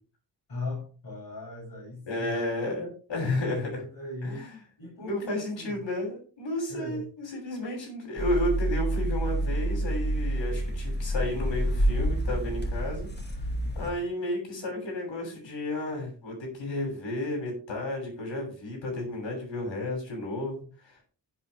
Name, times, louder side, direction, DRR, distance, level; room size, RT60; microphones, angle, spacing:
voice 1, 0.5-2.4 3.8-4.5 4.8-5.8 6.7-7.0, left 2 dB, 50° left, -5 dB, 7.8 m, -38 dB
voice 2, 2.1-3.8 4.2-4.6 5.0-13.1 13.7-21.1, left 1 dB, 80° left, 0 dB, 7.6 m, -32 dB
sound 1, 8.2-13.9, right 1 dB, 25° left, 2.6 m, -28 dB
16.0 x 8.3 x 3.4 m, 0.38 s
wide cardioid pair, 130°, 44 cm